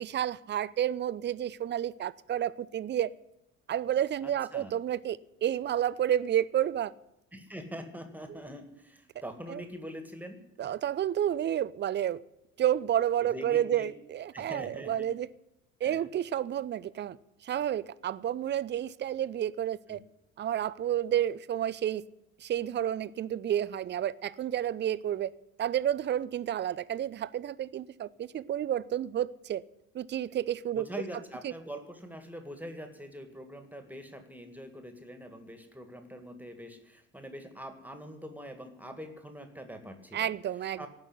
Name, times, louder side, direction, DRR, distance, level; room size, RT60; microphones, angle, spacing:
voice 1, 0.0-3.1 3.7-6.9 8.3-8.4 9.5-9.6 10.6-12.2 12.6-15.3 15.8-17.2 17.4-20.0 20.4-22.0 22.4-25.3 25.6-29.6 29.9-30.9 31.4-31.5 40.1-40.9, right 11 dB, 25° right, 0.6 m, -30 dB
voice 2, 4.2-4.7 7.3-10.7 13.2-13.9 14.3-15.1 15.8-16.1 19.9-20.0 30.7-40.3 40.8-40.9, equal, 5° right, 2.0 m, -44 dB
18.0 x 6.2 x 9.9 m
figure-of-eight pair, 60°, 39 cm